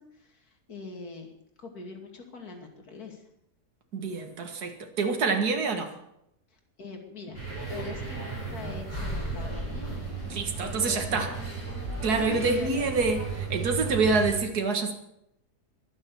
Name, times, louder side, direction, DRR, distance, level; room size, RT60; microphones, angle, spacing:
voice 1, 0.0-1.3 1.6-3.3 6.5-10.1 10.6-11.4 12.2-12.9, left 3 dB, 65° left, 3.0 m, -43 dB
voice 2, 3.9-5.9 10.3-11.3 12.0-14.9, right 4 dB, 70° right, 2.2 m, -26 dB
sound 1, 7.3-14.3, right 3 dB, 20° right, 6.8 m, -34 dB
22.0 x 7.4 x 7.1 m
omnidirectional pair, 1.7 m